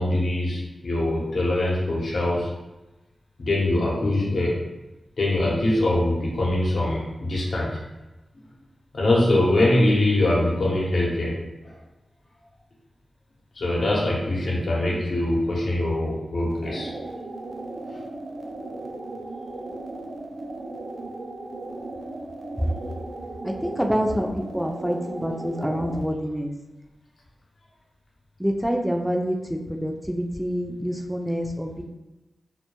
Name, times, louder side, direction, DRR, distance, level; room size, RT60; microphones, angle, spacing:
voice 1, 0.0-2.5 3.4-4.6 5.2-7.8 8.9-11.3 11.6-11.7 13.6-16.9 17.9-18.0, left 1 dB, 70° left, -4 dB, 0.7 m, -23 dB
sound 1, 16.5-26.1, right 2 dB, 75° right, 0.3 m, -36 dB
voice 2, 23.4-26.5 28.4-31.8, equal, 5° right, 2 dB, 0.4 m, -27 dB
2.2 x 2.1 x 2.9 m, 1.0 s
cardioid pair, 50°, 0 cm